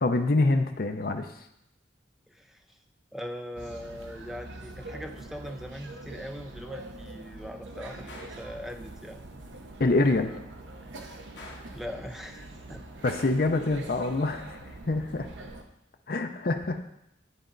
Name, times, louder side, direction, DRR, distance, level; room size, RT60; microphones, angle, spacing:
voice 1, 0.0-1.3 9.8-10.3 13.0-14.6 14.9-15.3 16.1-16.8, left 2 dB, 50° left, 5 dB, 0.5 m, -25 dB
voice 2, 2.3-2.8 3.1-9.2 11.7-12.8, equal, ahead, 6 dB, 0.4 m, -41 dB
sound 1, 3.6-15.6, right 2 dB, 80° right, 0.8 m, -44 dB
Gunshot gunfire, 8.1-8.5 11.4-11.8, left 2 dB, 70° left, 1.2 m, -46 dB
10.0 x 4.2 x 3.9 m, 0.81 s
head